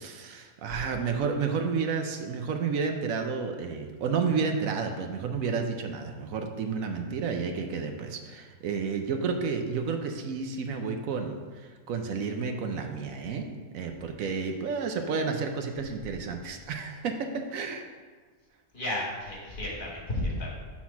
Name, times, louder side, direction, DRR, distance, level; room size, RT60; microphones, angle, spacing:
voice 1, 0.0-11.4 11.9-13.4 13.7-17.1 17.5-17.9, right 5 dB, 75° right, 5 dB, 1.1 m, -31 dB
voice 2, 18.7-20.5, left 1 dB, 40° left, -3 dB, 1.5 m, -33 dB
5.9 x 4.2 x 5.8 m, 1.5 s
omnidirectional pair, 1.4 m